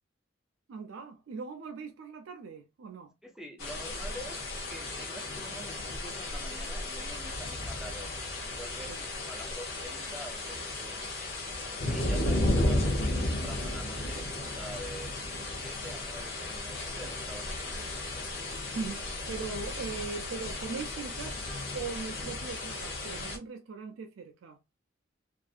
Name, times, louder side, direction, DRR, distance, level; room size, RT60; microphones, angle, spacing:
voice 1, 0.7-3.1 8.9-9.0 11.9-12.5 18.7-24.6, right 5 dB, 85° right, 0.4 m, -40 dB
voice 2, 3.2-4.4 4.7-8.1 8.5-11.1 11.9-15.2 15.6-17.9, right 1 dB, 5° right, 0.4 m, -46 dB
sound 1, 3.6-23.4, left 1 dB, 85° left, 0.8 m, -34 dB
2.5 x 2.4 x 2.3 m
head